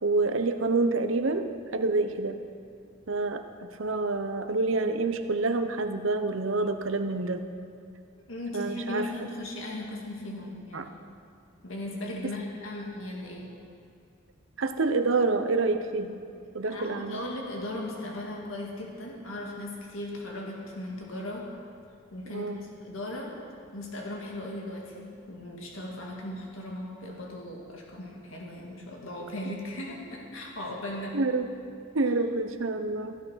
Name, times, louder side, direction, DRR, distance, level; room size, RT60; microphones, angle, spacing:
voice 1, 0.0-2.4 3.1-3.4 3.8-7.5 8.5-9.1 10.7-10.8 14.6-16.2 16.5-17.2 22.3-22.6 31.1-31.5 31.9-33.2, right 3 dB, 75° right, 7 dB, 0.8 m, -27 dB
voice 2, 8.3-10.9 11.6-13.5 16.7-21.5 22.1-23.4 23.7-31.2, left 1 dB, 80° left, -1 dB, 1.9 m, -37 dB
15.5 x 9.1 x 5.7 m, 2.4 s
head